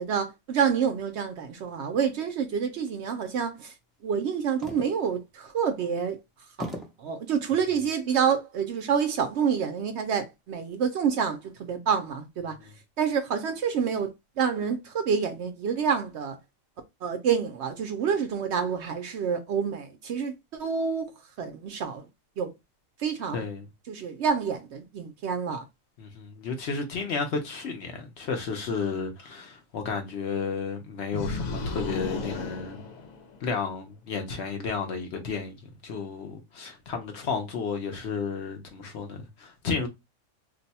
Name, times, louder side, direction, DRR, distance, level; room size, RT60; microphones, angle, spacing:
voice 1, 0.0-3.7 4.0-6.2 6.6-6.7 7.0-12.6 13.0-14.1 14.4-16.4 17.0-21.1 21.4-22.0 22.4-22.5 23.0-23.5 23.9-25.6, right 7 dB, 65° right, 0.8 m, -28 dB
sound 1, 4.6-5.2 5.8-5.9 6.6-7.1 7.9-8.3, equal, ahead, 0.4 m, -38 dB
voice 2, 23.3-23.6 26.0-32.8 33.4-39.9, left 5 dB, 60° left, 0.9 m, -32 dB
sound 2, 31.1-33.6, left 3 dB, 90° left, 1.1 m, -34 dB
2.6 x 2.2 x 4.0 m
omnidirectional pair, 1.4 m